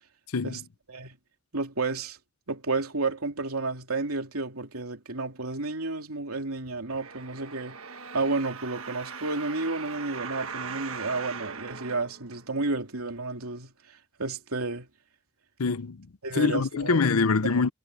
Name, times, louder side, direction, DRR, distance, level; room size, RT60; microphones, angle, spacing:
voice 1, 1.5-2.2 2.5-7.8 8.1-13.7 14.2-14.9 16.2-17.0 17.5-17.6, right 3 dB, 85° right, 2.9 m, -31 dB
sound 1, 6.9-12.8 13.4-13.5, right 5 dB, 65° right, 1.5 m, -40 dB
voice 2, 15.6-16.1 16.3-17.7, left 4 dB, 85° left, 0.7 m, -24 dB
head